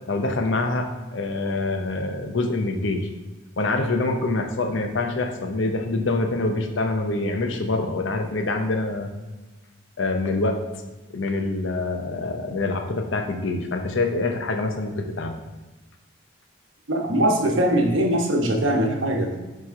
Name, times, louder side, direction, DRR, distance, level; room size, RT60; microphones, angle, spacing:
voice 1, 0.1-3.1 3.6-9.1 10.0-10.6 11.1-15.3, left 2 dB, 70° left, 5 dB, 0.7 m, -25 dB
voice 2, 16.9-19.4, right 1 dB, 75° right, 1 dB, 1.0 m, -21 dB
8.8 x 3.1 x 3.7 m, 1.2 s
head